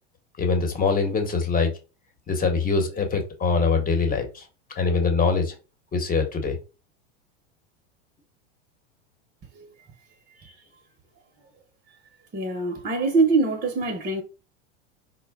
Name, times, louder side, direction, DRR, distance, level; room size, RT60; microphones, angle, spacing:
voice 1, 0.4-1.7 2.3-4.4 4.8-5.5 5.9-6.6, left 4 dB, 25° left, 1.2 m, -23 dB
voice 2, 12.3-14.2, right 3 dB, 25° right, 0.8 m, -24 dB
4.4 x 2.2 x 3.5 m
hypercardioid pair, 95°, 33 cm